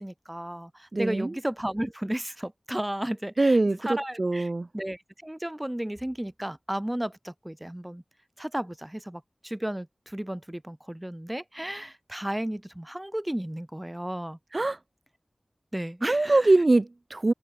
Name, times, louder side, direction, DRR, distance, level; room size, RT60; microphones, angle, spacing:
voice 1, 0.0-8.0 8.4-14.4 15.7-16.4, right 1 dB, 15° right, 4.2 m, -34 dB
voice 2, 0.9-1.3 3.4-4.7 14.5-14.8 16.0-17.3, right 2 dB, 50° right, 1.7 m, -23 dB
wide cardioid pair, 60°, 0 cm